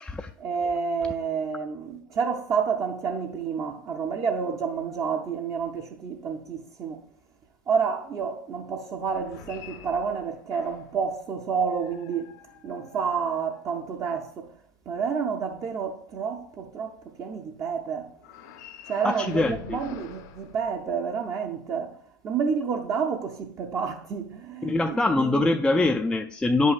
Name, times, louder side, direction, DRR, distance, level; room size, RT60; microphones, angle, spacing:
voice 1, 0.4-7.0 7.7-12.3 12.6-14.5 14.9-18.1 18.9-22.0 22.2-25.5, right 6 dB, 30° right, 0.6 m, -29 dB
sound 1, 9.0-11.0 11.7-14.1 18.2-21.3, left 8 dB, 60° left, 0.6 m, -47 dB
voice 2, 19.0-19.8 24.6-26.7, left 2 dB, 5° left, 0.3 m, -24 dB
9.5 x 5.5 x 2.4 m
hypercardioid pair, 95°, 11 cm